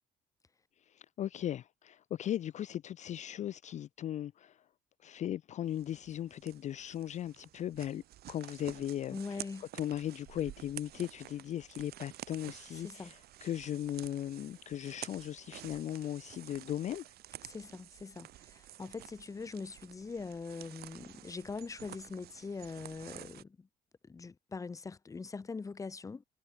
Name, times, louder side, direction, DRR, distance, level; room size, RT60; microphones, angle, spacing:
voice 1, 0.9-4.6 5.0-8.0 8.3-17.1, left 11 dB, 45° left, 0.4 m, -38 dB
sound 1, 5.7-23.4, right 14 dB, 70° right, 1.5 m, -51 dB
voice 2, 9.1-9.7 12.8-13.1 17.4-23.7 24.0-26.2, left 4 dB, 20° left, 0.8 m, -42 dB
cardioid pair, 110°, 17 cm